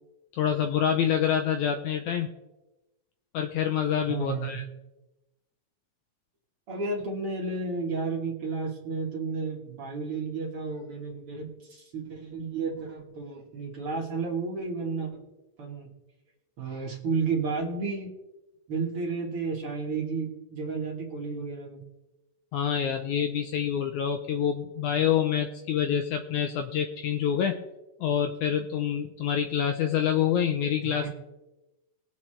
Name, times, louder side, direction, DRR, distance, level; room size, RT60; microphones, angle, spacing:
voice 1, 0.3-2.3 3.3-4.6 22.5-27.6 28.0-31.1, left 8 dB, 75° left, 6 dB, 1.8 m, -27 dB
voice 2, 4.1-4.6 6.7-15.1 15.6-15.9 16.6-18.1 18.7-21.8 30.8-31.1, right 4 dB, 50° right, -1 dB, 1.9 m, -32 dB
21.5 x 7.4 x 3.2 m, 1.0 s
omnidirectional pair, 4.0 m